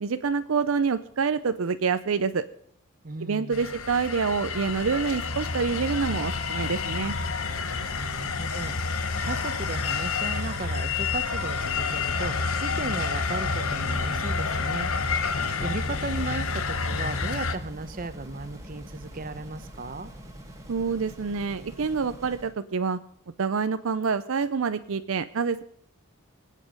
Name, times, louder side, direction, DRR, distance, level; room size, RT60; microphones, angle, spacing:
voice 1, 0.0-2.4 3.2-7.2 20.7-23.0 23.4-25.6, right 5 dB, 70° right, 11 dB, 0.5 m, -27 dB
voice 2, 3.0-3.7 7.7-14.9 15.2-20.1, right 2 dB, 40° right, 12 dB, 1.0 m, -36 dB
sound 1, 3.5-17.6, left 4 dB, 75° left, 1.1 m, -29 dB
sound 2, 13.2-22.6, equal, 15° right, 2.1 m, -44 dB
24.0 x 8.4 x 5.4 m, 0.65 s
head